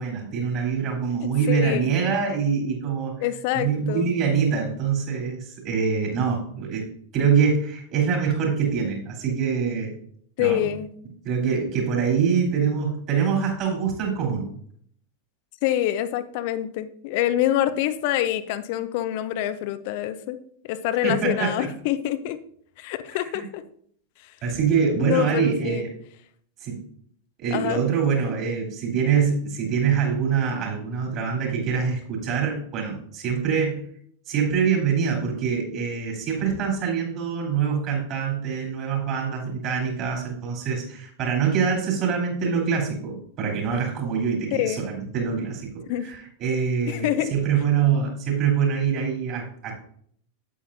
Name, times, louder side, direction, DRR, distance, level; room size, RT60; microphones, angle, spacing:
voice 1, 0.0-3.1 3.5-6.8 7.1-9.9 10.4-10.6 11.2-14.5 21.0-21.7 23.1-23.4 24.4-25.9 26.6-26.8 27.4-33.8 34.3-49.7, right 6 dB, 35° right, 0 dB, 3.4 m, -24 dB
voice 2, 1.5-2.0 3.2-4.1 10.4-10.9 15.6-20.4 20.6-22.4 22.8-23.6 25.0-25.8 27.5-27.8 44.6-44.8 45.9-46.1 46.9-47.3, left 12 dB, 50° left, 13 dB, 0.6 m, -26 dB
8.9 x 8.6 x 2.7 m, 0.63 s
figure-of-eight pair, 90°, 0 cm